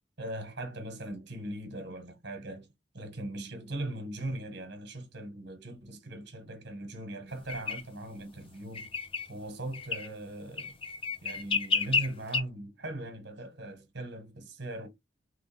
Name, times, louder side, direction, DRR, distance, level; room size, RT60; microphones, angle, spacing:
voice 1, 0.2-2.7 2.9-8.9 9.3-10.7 11.2-14.9, right 1 dB, 65° right, 1.4 m, -39 dB
sound 1, 7.5-7.8 8.7-9.3 9.7-10.1 10.6-12.4, left 4 dB, 30° left, 0.6 m, -30 dB
3.4 x 3.2 x 3.4 m
head